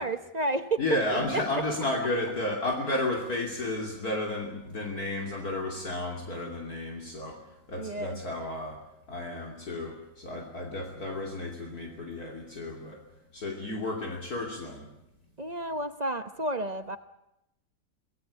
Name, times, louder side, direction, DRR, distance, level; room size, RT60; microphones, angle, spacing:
voice 1, 0.0-0.8 7.8-8.2 15.4-17.0, right 2 dB, 40° right, 10 dB, 0.6 m, -31 dB
voice 2, 0.8-8.8 9.1-13.0 13.3-14.9, left 2 dB, 50° left, 1 dB, 3.4 m, -32 dB
25.5 x 17.5 x 8.4 m, 0.87 s
omnidirectional pair, 2.0 m